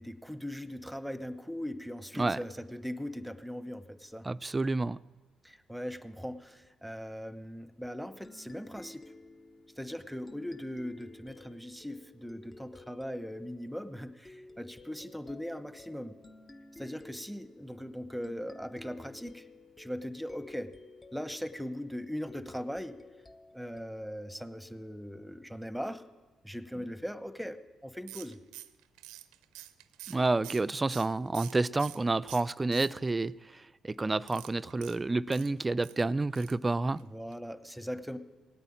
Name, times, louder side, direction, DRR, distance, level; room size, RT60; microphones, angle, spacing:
voice 1, 0.0-4.3 5.4-9.1 9.8-16.2 16.8-19.5 19.8-20.7 21.1-23.0 23.5-26.0 26.4-27.6 27.8-28.4 37.0-38.2, equal, ahead, 13 dB, 1.1 m, -39 dB
voice 2, 4.2-5.0 30.1-37.0, right 2 dB, 25° right, 16 dB, 0.4 m, -29 dB
sound 1, 8.2-25.4, left 2 dB, 30° left, 0.9 m, -54 dB
sound 2, 28.1-32.0 32.3-33.3 34.2-36.0 36.3-36.7 36.9-37.0 37.3-37.4, right 15 dB, 85° right, 0.5 m, -48 dB
17.5 x 9.0 x 8.7 m, 1.2 s
hypercardioid pair, 50°, 0 cm